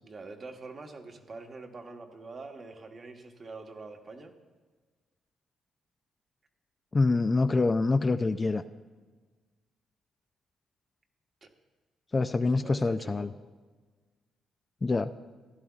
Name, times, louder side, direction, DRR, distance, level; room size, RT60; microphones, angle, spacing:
voice 1, 0.0-4.3 11.4-11.5 12.3-13.3, right 3 dB, 40° right, 3 dB, 1.2 m, -45 dB
voice 2, 6.9-8.6 12.1-13.3 14.8-15.1, left 3 dB, 25° left, 10 dB, 0.3 m, -25 dB
15.5 x 11.5 x 2.4 m, 1.4 s
cardioid pair, 90°, 0 cm